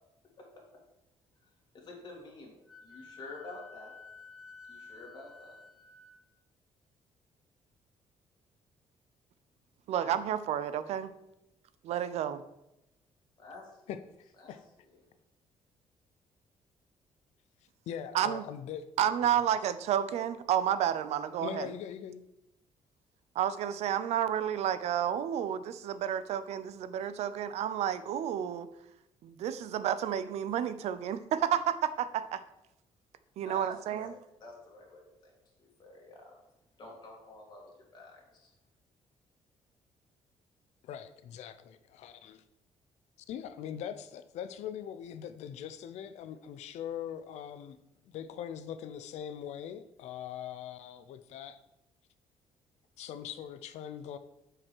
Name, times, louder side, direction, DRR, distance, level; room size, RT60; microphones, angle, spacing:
voice 1, 0.4-0.8 1.7-2.6 2.8-4.0 4.7-5.6 13.4-13.8 14.3-15.0 33.4-36.4 36.8-38.5, left 2 dB, 40° left, 2.5 m, -50 dB
Wind instrument woodwind instrument, 2.7-6.2, left 4 dB, 5° right, 1.2 m, -52 dB
voice 2, 9.9-11.1 11.8-12.4 18.1-18.4 19.0-21.7 23.4-28.7 29.2-32.4 33.4-34.1, right 10 dB, 75° right, 0.6 m, -31 dB
voice 3, 17.9-18.8 19.2-19.4 21.4-22.3 40.8-42.4 43.3-47.8 48.1-51.6 53.0-54.2, left 9 dB, 90° left, 0.6 m, -41 dB
7.6 x 4.9 x 6.2 m
cardioid pair, 160°, 11 cm